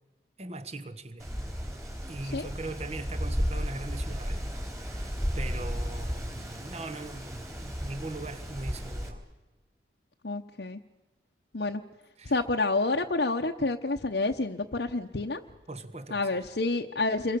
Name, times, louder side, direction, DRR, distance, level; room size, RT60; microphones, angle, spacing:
voice 1, 0.4-1.3 2.1-4.5 4.8-9.2 12.2-12.4 15.7-16.3, right 2 dB, 35° right, 1.4 m, -40 dB
Wind, 1.2-9.1, equal, 15° right, 4.1 m, -34 dB
voice 2, 10.2-10.8 11.5-11.8 12.2-15.4 16.1-17.4, left 3 dB, 60° left, 1.0 m, -28 dB
28.0 x 23.0 x 7.0 m
head